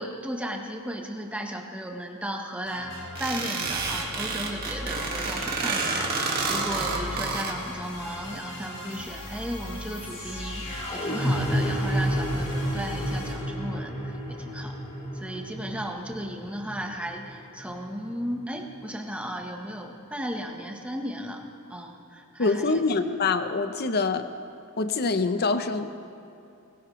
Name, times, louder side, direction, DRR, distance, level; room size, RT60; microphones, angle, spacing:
voice 1, 0.0-14.7 15.1-21.4 21.7-22.8, equal, 5° right, 2 dB, 1.1 m, -35 dB
sound 1, 2.6-13.3, left 1 dB, 80° left, 4.0 m, -39 dB
sound 2, 3.2-7.5, right 4 dB, 45° right, 1.8 m, -29 dB
sound 3, 8.9-18.9, equal, 30° left, 1.8 m, -31 dB
voice 2, 22.4-24.3 24.8-26.0, left 3 dB, 45° left, 10 dB, 0.7 m, -25 dB
20.0 x 16.5 x 3.1 m, 2.7 s
head